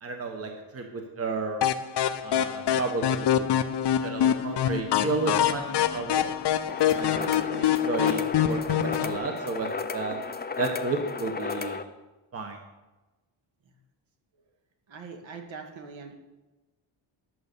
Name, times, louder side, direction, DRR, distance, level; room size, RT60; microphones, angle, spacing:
voice 1, 0.0-1.6 2.2-3.6 4.0-5.6 5.9-6.3 6.9-10.2 10.6-11.8 12.3-12.6, right 3 dB, 30° right, 3 dB, 1.1 m, -32 dB
sound 1, 1.6-9.2, left 10 dB, 55° left, 0.7 m, -25 dB
sound 2, 6.7-11.8, left 4 dB, 20° left, 0.5 m, -34 dB
voice 2, 14.9-16.1, right 5 dB, 65° right, 3 dB, 2.0 m, -43 dB
11.0 x 7.6 x 6.8 m, 1.1 s
wide cardioid pair, 175°, 49 cm